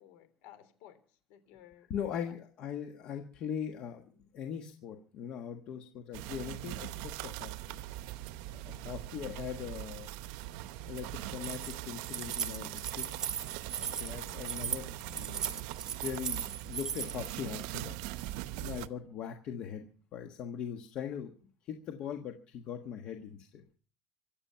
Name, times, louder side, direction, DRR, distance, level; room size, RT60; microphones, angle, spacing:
voice 1, 0.0-2.3 8.7-9.5, left 11 dB, 60° left, 11 dB, 3.7 m, -57 dB
voice 2, 1.9-4.0 4.3-7.8 8.5-10.1 10.9-13.1 13.9-15.6 16.0-18.0 18.2-18.3 18.6-21.3 21.6-23.7, left 8 dB, 40° left, 5 dB, 1.4 m, -40 dB
sound 1, 6.1-18.9, right 15 dB, 65° right, 0.8 m, -41 dB
Keys jangling, 11.3-17.3, right 8 dB, 25° right, 1.0 m, -38 dB
24.5 x 8.8 x 5.7 m, 0.42 s
cardioid pair, 180°, 3 cm